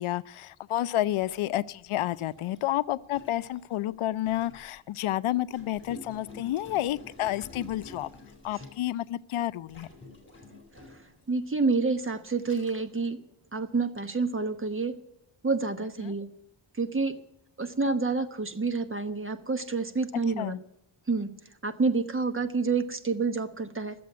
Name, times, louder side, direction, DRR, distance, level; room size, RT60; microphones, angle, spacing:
voice 1, 0.0-8.1 8.4-9.9 16.0-16.1 20.4-20.6, left 14 dB, 85° left, 15 dB, 0.6 m, -30 dB
Gurgling, 1.2-1.3 2.1-4.8 5.5-9.1 9.7-11.2 11.9-12.0 12.4-13.0, left 2 dB, 25° left, 3.7 m, -49 dB
voice 2, 11.3-13.2 13.5-15.0 15.4-16.3 16.8-17.2 17.6-20.6 21.1-21.3 21.6-23.9, right 4 dB, 25° right, 9 dB, 1.1 m, -28 dB
13.5 x 7.8 x 9.4 m, 0.80 s
wide cardioid pair, 110°, 48 cm